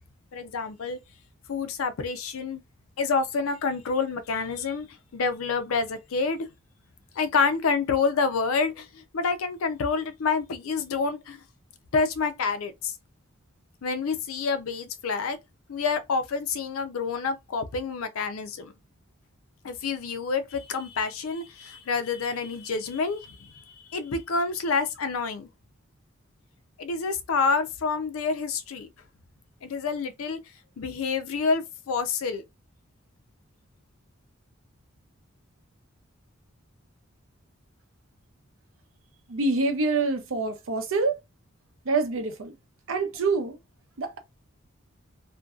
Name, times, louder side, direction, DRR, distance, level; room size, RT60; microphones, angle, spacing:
voice 1, 0.3-1.0 1.5-2.6 3.0-4.9 5.1-6.5 7.2-11.4 11.9-12.9 13.8-15.4 15.7-18.7 19.6-23.6 23.9-25.5 26.8-28.9 29.6-30.4 30.8-32.4, left 4 dB, 85° left, 0.5 m, -28 dB
voice 2, 39.3-41.2 41.8-42.6 42.9-43.6 44.0-44.2, right 3 dB, 70° right, 0.6 m, -26 dB
2.6 x 2.2 x 2.3 m
head